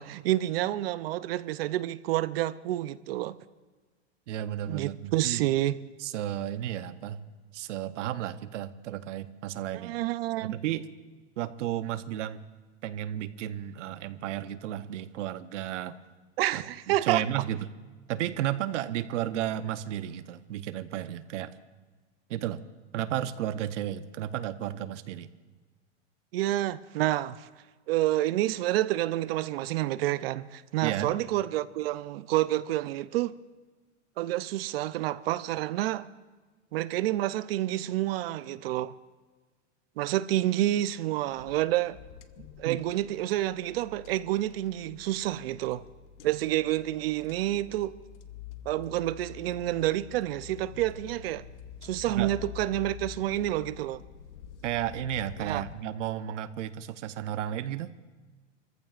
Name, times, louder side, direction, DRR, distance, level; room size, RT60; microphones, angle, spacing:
voice 1, 0.0-3.4 4.7-5.8 9.8-10.6 16.4-17.4 26.3-27.5 27.9-33.4 34.2-36.1 36.7-38.9 40.0-42.0 42.6-45.8 46.2-48.0 48.7-51.4 51.8-54.0 55.4-55.6, right 15 dB, 55° right, 0.5 m, -29 dB
voice 2, 4.3-5.4 6.0-7.2 7.5-10.0 10.4-10.9 11.4-12.4 12.8-16.0 16.5-17.7 18.1-21.5 22.3-22.6 22.9-25.3 30.8-31.1 42.7-42.8 52.2-52.3 54.6-57.9, right 11 dB, 75° right, 0.9 m, -33 dB
sound 1, 41.3-55.8, left 9 dB, 70° left, 0.9 m, -47 dB
29.0 x 14.5 x 2.5 m
supercardioid pair, 165°, 37 cm